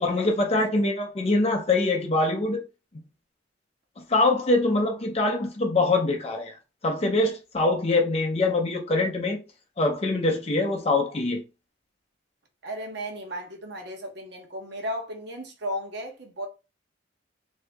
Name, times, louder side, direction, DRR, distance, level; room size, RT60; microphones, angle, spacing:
voice 1, 0.0-2.6 4.1-6.6 6.8-9.4 9.8-11.4, left 2 dB, 30° left, 0.5 m, -24 dB
voice 2, 12.6-16.5, equal, 55° right, 0.9 m, -35 dB
2.7 x 2.7 x 3.4 m
head